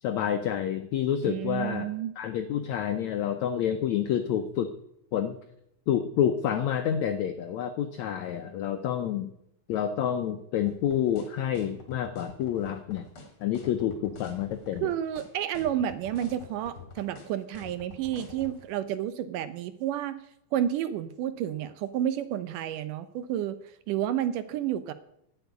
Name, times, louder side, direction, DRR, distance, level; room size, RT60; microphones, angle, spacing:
voice 1, 0.0-1.9 2.2-4.7 5.1-5.4 5.9-9.3 9.7-13.0 13.4-14.9, left 9 dB, 85° left, 7 dB, 1.6 m, -28 dB
voice 2, 1.2-2.1 14.8-20.2 20.5-23.6 23.9-24.9, right 11 dB, 75° right, 12 dB, 2.1 m, -30 dB
sound 1, 10.7-18.6, left 5 dB, 40° left, 2.8 m, -46 dB
12.0 x 7.0 x 9.5 m, 0.78 s
omnidirectional pair, 4.1 m